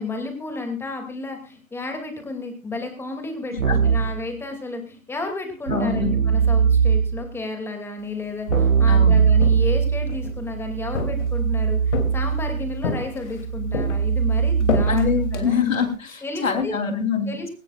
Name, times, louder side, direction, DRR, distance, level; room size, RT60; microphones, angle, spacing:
voice 1, 0.0-15.6 16.2-16.8 17.3-17.5, left 2 dB, 5° left, 5 dB, 2.6 m, -32 dB
Keyboard (musical), 3.6-4.2 5.7-7.3 8.5-15.5, right 6 dB, 75° right, 1.4 m, -21 dB
voice 2, 5.7-6.1 8.9-9.2 14.9-17.3, left 6 dB, 75° left, 6 dB, 3.6 m, -24 dB
Walk footsteps, 8.3-8.9 9.4-10.4 10.9-11.5 11.9-12.5 12.8-13.4 13.7-16.0, left 5 dB, 60° left, 3.0 m, -29 dB
20.0 x 18.0 x 2.5 m, 0.32 s
figure-of-eight pair, 130°, 41 cm